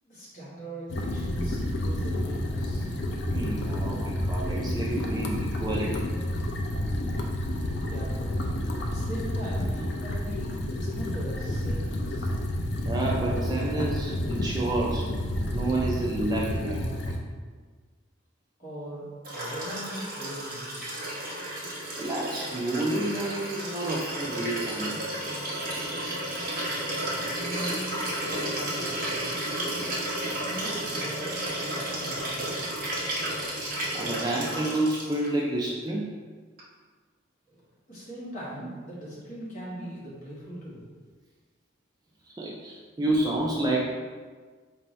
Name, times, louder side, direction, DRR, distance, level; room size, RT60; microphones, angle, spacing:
voice 1, 0.0-2.9 7.9-12.3 18.6-20.8 27.1-29.8 30.4-32.8 37.5-37.6 37.9-40.8, right 1 dB, 40° left, -8 dB, 1.3 m, -41 dB
sound 1, 0.9-17.2, left 1 dB, 60° left, 0.5 m, -30 dB
voice 2, 3.3-6.1 12.8-15.1 15.5-16.9 22.0-25.1 33.9-36.2 42.3-43.8, right 2 dB, 20° right, -3 dB, 0.3 m, -29 dB
Liquid, 19.2-35.3 36.6-36.7, right 1 dB, 45° right, 0.9 m, -32 dB
4.4 x 2.7 x 3.1 m, 1.5 s
head